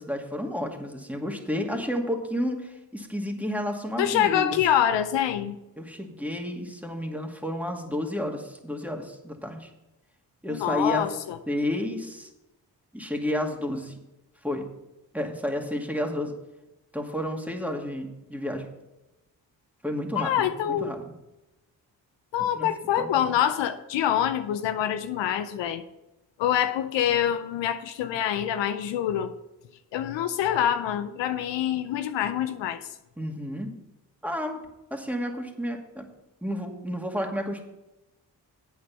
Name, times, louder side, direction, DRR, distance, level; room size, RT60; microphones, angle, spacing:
voice 1, 0.0-4.5 5.8-9.7 10.4-11.0 11.5-12.3 12.9-13.9 14.4-14.7 15.1-16.3 16.9-18.7 19.8-21.1 22.5-22.7 23.0-23.2 33.2-33.8 34.2-34.6 34.9-36.0 36.4-37.6, left 1 dB, 5° right, 2 dB, 2.2 m, -31 dB
voice 2, 4.0-5.6 10.5-11.4 20.2-20.9 22.3-25.8 26.4-29.3 29.9-32.8, left 10 dB, 75° left, 10 dB, 0.7 m, -25 dB
8.4 x 7.3 x 5.8 m, 0.95 s
supercardioid pair, 40°, 44 cm